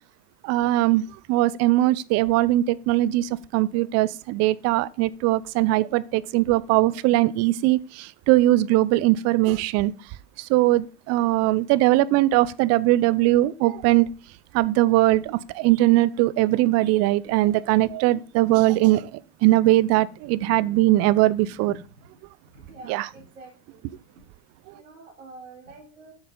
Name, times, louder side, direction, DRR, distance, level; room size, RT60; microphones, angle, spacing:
voice 1, 0.4-1.0 1.3-9.9 10.4-14.1 14.5-19.1 19.4-21.7 22.9-23.1, right 16 dB, 45° right, 0.6 m, -20 dB
voice 2, 22.5-23.8 24.7-26.1, right 2 dB, 85° right, 4.2 m, -46 dB
8.7 x 6.4 x 3.8 m
hypercardioid pair, 95°, 37 cm